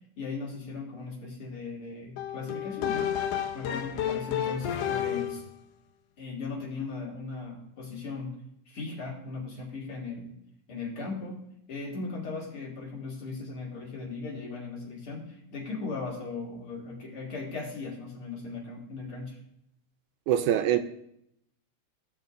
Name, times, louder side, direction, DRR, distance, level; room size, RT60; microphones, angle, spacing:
voice 1, 0.2-3.2 3.5-5.4 6.2-8.4 8.7-10.4 10.7-19.4, left 3 dB, 50° left, -3 dB, 2.6 m, -38 dB
sound 1, 2.2-5.5, left 10 dB, 85° left, 1.4 m, -31 dB
voice 2, 20.3-20.8, right 11 dB, 80° right, 9 dB, 2.0 m, -23 dB
15.5 x 6.6 x 2.5 m, 0.75 s
omnidirectional pair, 3.6 m